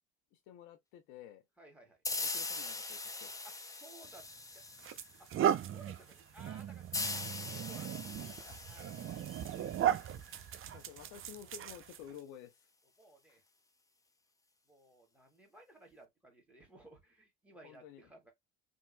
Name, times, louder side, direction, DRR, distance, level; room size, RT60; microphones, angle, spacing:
voice 1, 0.3-1.4 2.2-3.3 8.5-8.6 10.7-12.6 17.6-18.1, left 10 dB, 80° left, 0.9 m, -52 dB
voice 2, 1.6-2.0 3.4-4.3 4.5-4.6 5.2-6.9 7.3-8.9 13.0-13.4 14.7-18.3, right 1 dB, 5° right, 2.0 m, -58 dB
sound 1, 2.1-5.4 6.9-10.4, left 3 dB, 10° left, 0.5 m, -41 dB
sound 2, 4.0-4.2 4.8-12.2, right 10 dB, 45° right, 0.6 m, -37 dB
3.6 x 2.6 x 2.2 m
supercardioid pair, 90°, 30 cm